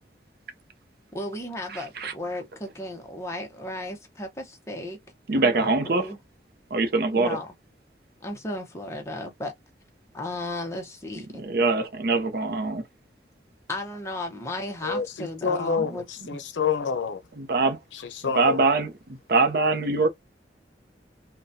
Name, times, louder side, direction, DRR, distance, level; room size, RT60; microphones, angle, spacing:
voice 1, 1.1-5.0 5.3-6.2 7.1-7.5 8.2-9.5 10.1-11.4 13.7-16.0, left 1 dB, 15° left, 0.8 m, -34 dB
voice 2, 1.7-2.1 5.3-6.0 6.7-7.4 11.4-12.8 15.8-15.9 17.4-17.8 18.2-20.1, right 3 dB, 55° right, 0.6 m, -23 dB
voice 3, 14.8-17.2 18.2-18.6, left 5 dB, 90° left, 0.6 m, -28 dB
3.9 x 2.2 x 2.6 m
head